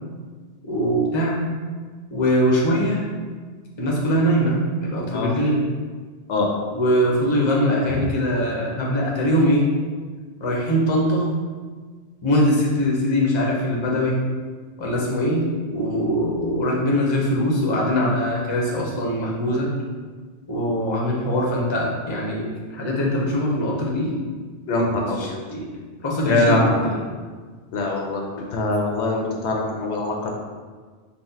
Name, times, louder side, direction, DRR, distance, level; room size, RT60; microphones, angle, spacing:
voice 1, 0.6-1.4 2.1-3.0 3.8-5.7 6.7-9.7 10.4-11.3 12.2-14.2 14.8-19.7 20.5-24.2 25.1-25.7 26.0-27.0, equal, 30° left, -3 dB, 0.6 m, -22 dB
voice 2, 24.7-25.4 26.3-26.7 27.7-28.2 28.5-30.3, left 2 dB, 80° left, 0 dB, 0.9 m, -22 dB
4.4 x 2.0 x 3.9 m, 1.5 s
omnidirectional pair, 1.2 m